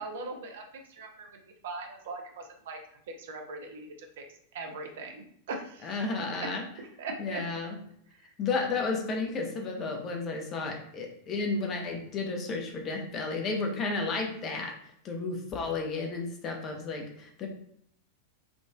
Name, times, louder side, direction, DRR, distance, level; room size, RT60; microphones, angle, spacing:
voice 1, 0.0-2.8 3.2-4.2 4.5-5.9 6.4-6.5 7.0-7.4 8.1-8.2, right 3 dB, 55° right, 3 dB, 0.6 m, -40 dB
voice 2, 5.8-6.6 7.2-7.8 8.4-14.7 15.0-17.5, left 3 dB, 30° left, 2 dB, 0.7 m, -32 dB
3.6 x 2.4 x 2.3 m, 0.67 s
figure-of-eight pair, 90°, 0 cm